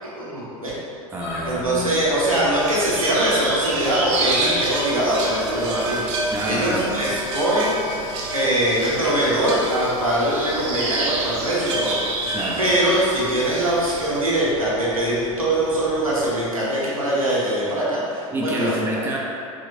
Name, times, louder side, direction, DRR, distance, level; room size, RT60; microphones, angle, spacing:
voice 1, 0.0-0.7 1.5-7.7 8.3-11.9 12.6-18.7, right 1 dB, 90° right, -7 dB, 0.8 m, -22 dB
voice 2, 1.1-1.9 6.3-6.8 12.3-12.6 18.3-19.2, equal, 10° right, -3 dB, 0.5 m, -27 dB
sound 1, 1.2-16.5, left 1 dB, 50° left, 0.7 m, -38 dB
sound 2, 2.6-14.3, right 2 dB, 60° right, 0.6 m, -28 dB
3.6 x 3.0 x 2.6 m, 2.5 s
figure-of-eight pair, 85°, 18 cm